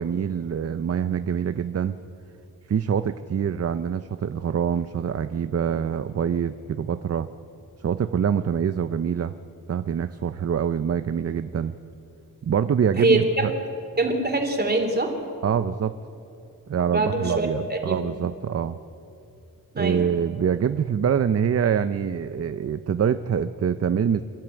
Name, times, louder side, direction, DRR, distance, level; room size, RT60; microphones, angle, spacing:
voice 1, 0.0-2.0 2.7-7.3 7.8-9.3 9.7-11.8 12.4-13.5 15.4-15.9 16.7-18.8 19.8-24.2, right 8 dB, 40° right, 11 dB, 0.6 m, -25 dB
voice 2, 12.9-13.5 14.0-15.1 16.9-18.0 19.7-20.0, right 2 dB, 25° right, 4 dB, 2.8 m, -23 dB
27.5 x 12.5 x 8.8 m, 2.7 s
wide cardioid pair, 125°, 37 cm